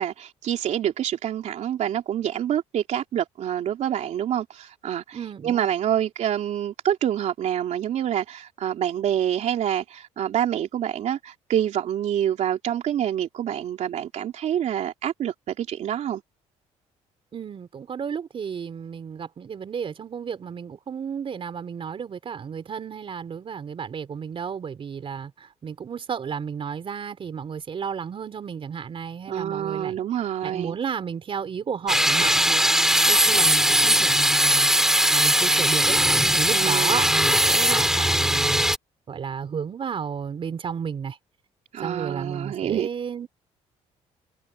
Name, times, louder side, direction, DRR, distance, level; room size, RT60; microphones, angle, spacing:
voice 1, 0.0-16.2 29.3-30.8 36.5-37.1 41.7-42.9, right 10 dB, 65° right, 3.3 m, -27 dB
voice 2, 5.1-5.7 17.3-25.3 25.6-30.0 30.4-32.6 33.1-34.7 35.1-36.0 36.4-38.6 39.1-41.2 41.8-43.3, right 7 dB, 45° right, 4.2 m, -32 dB
sound 1, 31.9-38.8, equal, 5° right, 4.2 m, -20 dB
cardioid pair, 90°, 13 cm